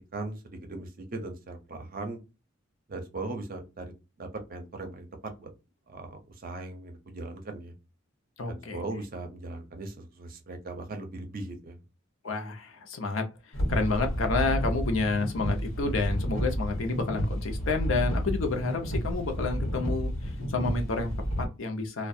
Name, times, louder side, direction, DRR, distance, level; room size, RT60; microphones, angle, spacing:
voice 1, 0.1-2.2 2.9-5.5 5.9-7.7 8.5-11.8, right 2 dB, 45° right, 0.6 m, -39 dB
voice 2, 8.4-8.8 12.2-22.1, left 3 dB, 65° left, 0.6 m, -30 dB
sound 1, 13.5-21.5, equal, 85° left, 1.1 m, -31 dB
2.4 x 2.2 x 2.6 m
head